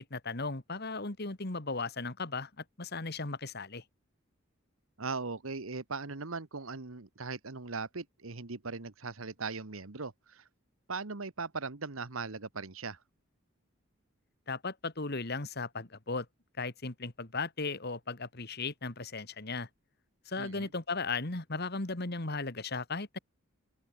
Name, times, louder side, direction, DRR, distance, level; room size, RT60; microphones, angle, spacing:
voice 1, 0.0-2.5 2.8-3.8 14.5-16.3 16.6-19.7 20.3-23.2, left 3 dB, 50° left, 2.1 m, -36 dB
voice 2, 5.0-10.4 10.9-13.0 20.4-20.7, right 4 dB, 80° right, 1.5 m, -39 dB
open air
head